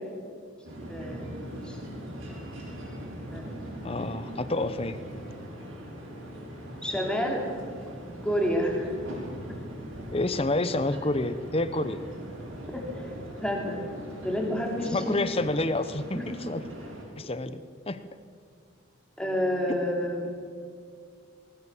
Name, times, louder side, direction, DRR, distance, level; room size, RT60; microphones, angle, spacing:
sound 1, 0.6-17.0, equal, 80° right, 6.6 m, -41 dB
voice 1, 0.9-1.4 1.6-1.8 3.3-3.6 6.8-7.4 8.2-8.9 12.7-12.9 13.4-13.8 14.2-15.2 16.1-16.3 19.2-20.3, equal, 5° left, 0 dB, 3.4 m, -29 dB
voice 2, 3.8-5.0 10.1-12.0 14.9-16.7 17.2-17.6 17.9-18.0, left 2 dB, 30° left, 13 dB, 0.8 m, -28 dB
20.0 x 19.5 x 7.2 m, 2.1 s
head